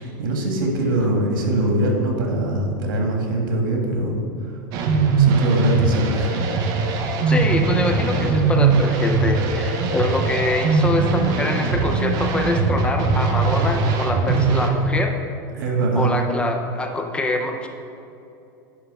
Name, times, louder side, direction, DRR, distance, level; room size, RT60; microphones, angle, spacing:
voice 1, 0.0-4.2 5.2-6.3 15.5-16.1, right 2 dB, 90° right, 0 dB, 1.6 m, -22 dB
sound 1, 4.7-14.7, right 4 dB, 35° right, 0.7 m, -20 dB
voice 2, 7.3-15.2 15.9-17.7, left 2 dB, 10° left, 4 dB, 0.4 m, -25 dB
10.0 x 3.4 x 5.2 m, 2.7 s
supercardioid pair, 165°, 11 cm